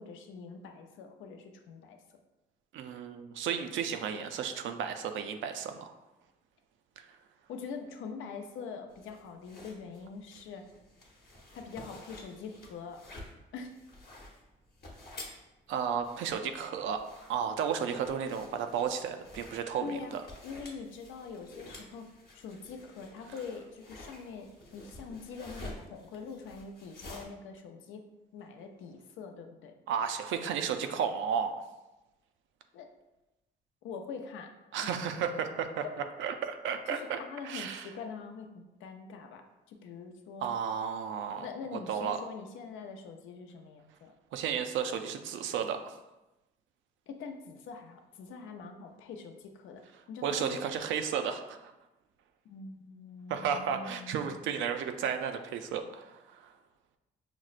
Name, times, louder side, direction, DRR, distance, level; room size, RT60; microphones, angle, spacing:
voice 1, 0.0-2.2 7.5-10.7 11.5-13.0 13.5-13.7 19.8-20.1 20.4-28.0 28.3-29.7 32.7-32.9 33.8-34.5 34.8-35.0 36.9-40.5 41.4-44.1 47.1-50.8 52.4-54.3, left 5 dB, 80° left, 5 dB, 0.5 m, -44 dB
voice 2, 2.7-5.9 15.7-17.0 17.3-20.2 29.9-31.5 34.7-35.8 36.2-37.2 37.4-37.9 40.4-41.5 41.7-42.2 44.3-46.0 50.2-51.7 53.3-56.5, right 7 dB, 75° right, 7 dB, 0.4 m, -33 dB
sound 1, 8.9-27.2, left 1 dB, 50° left, 0.9 m, -50 dB
5.9 x 2.1 x 2.4 m, 1.0 s
cardioid pair, 90°, 20 cm